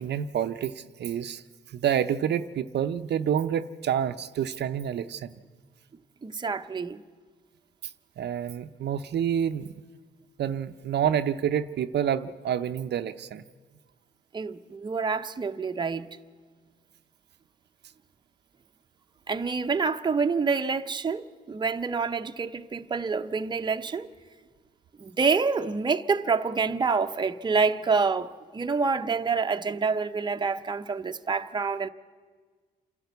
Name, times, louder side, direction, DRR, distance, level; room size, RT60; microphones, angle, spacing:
voice 1, 0.0-1.4 1.7-5.3 8.2-9.7 10.4-13.4, right 9 dB, 60° right, 0.6 m, -28 dB
voice 2, 6.2-7.0 14.3-16.1 19.3-24.1 25.0-31.9, right 4 dB, 20° right, 0.7 m, -27 dB
28.0 x 12.0 x 8.1 m
cardioid pair, 90°, 20 cm